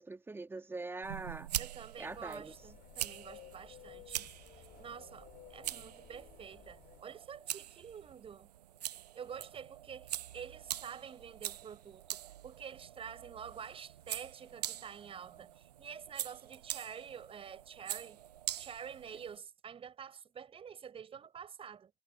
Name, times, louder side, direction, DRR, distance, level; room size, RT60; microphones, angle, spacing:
voice 1, 0.0-1.5 2.0-2.5, right 3 dB, 10° right, 2.4 m, -43 dB
sound 1, 1.0-19.4, right 12 dB, 75° right, 1.1 m, -44 dB
voice 2, 1.6-4.3 4.5-8.5 9.1-12.2 12.4-18.2 18.6-21.9, right 7 dB, 25° right, 6.8 m, -48 dB
sound 2, 2.0-7.0, left 15 dB, 45° left, 4.5 m, -56 dB
hypercardioid pair, 90°, 20 cm